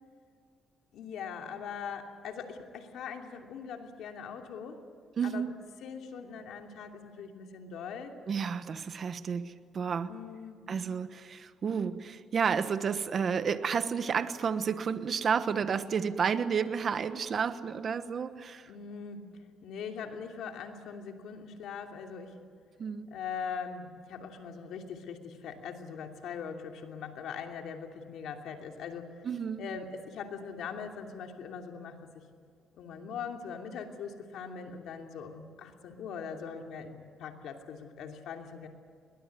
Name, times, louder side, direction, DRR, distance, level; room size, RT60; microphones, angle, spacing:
voice 1, 0.9-4.8 5.2-5.5 5.8-8.2 10.1-10.6 18.7-19.3 19.6-22.4 23.1-29.1 29.6-32.2 32.7-38.7, left 6 dB, 80° left, 3 dB, 2.8 m, -41 dB
voice 2, 5.2-5.5 8.3-10.1 10.7-18.7 22.8-23.1 29.2-29.7, right 6 dB, 50° right, 11 dB, 1.2 m, -31 dB
21.5 x 20.5 x 9.6 m, 2.2 s
cardioid pair, 90°, 0 cm